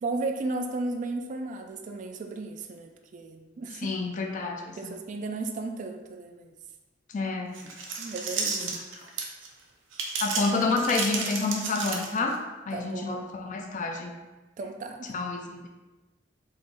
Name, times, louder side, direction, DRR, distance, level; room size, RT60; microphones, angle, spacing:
voice 1, 0.0-4.0 4.7-6.5 8.0-8.7 12.7-13.3 14.6-15.1, right 3 dB, 40° right, 4 dB, 0.3 m, -34 dB
voice 2, 3.8-4.9 7.1-7.6 8.6-8.7 9.0-9.1 10.2-12.4 12.7-14.1 15.1-15.7, left 3 dB, 45° left, 2 dB, 0.4 m, -29 dB
sound 1, 7.5-9.5 9.9-12.4, right 4 dB, 85° right, 0.6 m, -32 dB
3.9 x 3.8 x 2.5 m, 1.1 s
head